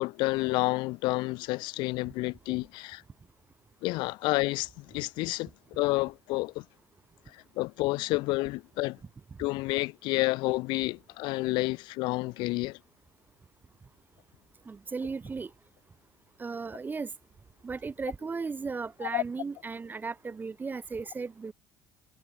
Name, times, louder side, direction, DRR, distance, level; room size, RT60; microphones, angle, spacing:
voice 1, 0.0-3.0 3.8-6.6 7.3-9.0 9.4-12.8 19.1-19.2, left 22 dB, 60° left, 0.5 m, -30 dB
voice 2, 14.7-15.5 16.4-17.1 17.6-21.5, right 4 dB, 20° right, 0.4 m, -36 dB
figure-of-eight pair, 55°, 9 cm